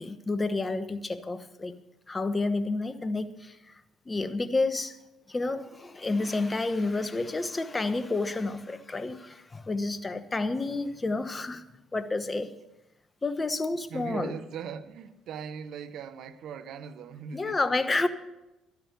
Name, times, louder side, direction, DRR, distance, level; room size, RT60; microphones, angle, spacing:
voice 1, 0.0-1.8 2.1-5.0 5.3-11.6 11.9-12.5 13.2-14.4 17.3-18.1, left 3 dB, 25° left, 1.2 m, -30 dB
voice 2, 13.9-17.9, right 7 dB, 65° right, 0.8 m, -40 dB
12.5 x 10.5 x 6.8 m
hypercardioid pair, 50°, 0 cm